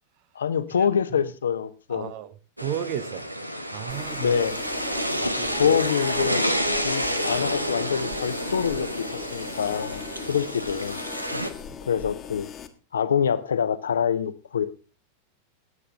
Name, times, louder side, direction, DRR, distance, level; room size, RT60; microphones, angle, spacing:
voice 1, 0.3-2.1 4.2-4.6 5.5-6.4 6.8-11.0 11.9-12.5 12.9-14.7, left 7 dB, 70° left, 0.9 m, -25 dB
voice 2, 1.9-3.3 3.7-4.4 5.2-5.8 10.1-10.4 11.3-11.8, right 10 dB, 45° right, 0.8 m, -35 dB
sound 1, 2.6-11.5, equal, 85° right, 1.1 m, -29 dB
sound 2, 3.9-12.7, left 8 dB, 25° left, 1.4 m, -40 dB
Guitar, 4.9-11.9 12.2-12.3, left 1 dB, 20° right, 1.6 m, -43 dB
19.0 x 8.2 x 3.7 m
figure-of-eight pair, 90°, 0 cm